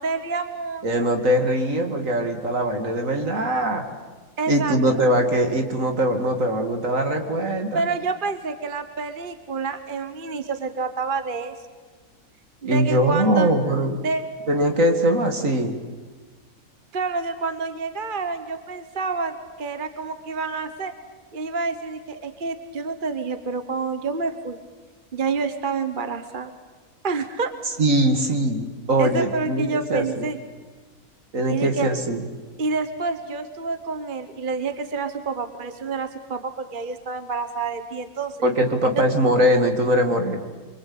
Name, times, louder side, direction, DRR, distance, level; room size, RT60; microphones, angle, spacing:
voice 1, 0.0-1.1 4.4-5.0 7.7-11.5 12.6-13.5 14.0-14.3 16.9-20.9 21.3-24.6 25.1-26.5 27.0-27.5 29.0-30.4 31.5-31.9 32.6-38.4, right 4 dB, 35° right, 9 dB, 1.3 m, -28 dB
voice 2, 0.8-3.8 4.5-7.8 12.6-14.0 14.5-15.8 27.8-30.3 31.3-32.2 38.4-40.4, right 1 dB, 65° right, 5 dB, 2.8 m, -21 dB
26.0 x 23.5 x 8.7 m, 1.3 s
omnidirectional pair, 1.5 m